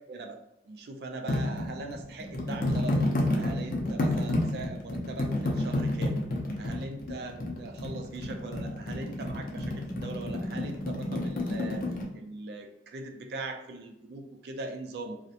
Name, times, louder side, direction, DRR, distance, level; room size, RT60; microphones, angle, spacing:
voice 1, 0.1-0.4 0.7-3.1 3.3-6.2 6.6-11.9 12.1-15.2, right 2 dB, 65° right, 4 dB, 0.3 m, -41 dB
sound 1, 1.3-12.1, left 1 dB, 50° left, 0.4 m, -30 dB
2.4 x 2.0 x 2.7 m, 0.84 s
head